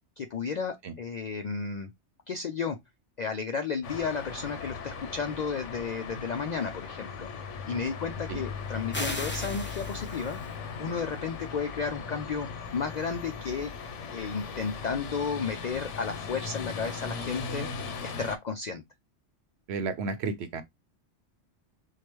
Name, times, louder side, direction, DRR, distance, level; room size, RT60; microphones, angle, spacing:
voice 1, 0.2-1.9 2.3-2.8 3.2-7.3 7.7-10.4 10.8-13.7 14.1-17.7 18.0-18.8, left 5 dB, 65° left, 0.4 m, -33 dB
sound 1, 3.8-18.4, left 5 dB, 85° left, 1.1 m, -38 dB
sound 2, 8.9-10.5, left 1 dB, 15° left, 0.6 m, -36 dB
voice 2, 19.7-20.6, right 4 dB, 70° right, 0.9 m, -32 dB
4.6 x 2.2 x 3.0 m
omnidirectional pair, 1.2 m